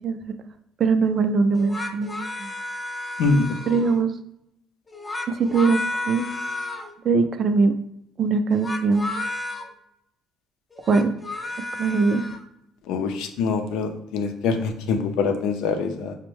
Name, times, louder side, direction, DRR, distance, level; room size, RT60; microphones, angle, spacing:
voice 1, 0.0-0.4 0.8-2.5 3.7-4.1 5.3-6.2 7.0-7.7 8.2-9.1 10.9-11.1 11.8-12.2, right 4 dB, 50° right, 9 dB, 0.4 m, -21 dB
sound 1, 1.5-4.0 4.9-6.9 8.5-9.7 10.7-12.4, left 2 dB, 20° left, 0.5 m, -32 dB
voice 2, 12.9-16.2, left 4 dB, 80° left, 6 dB, 0.5 m, -24 dB
5.1 x 2.1 x 3.1 m, 0.81 s
supercardioid pair, 75°, 0 cm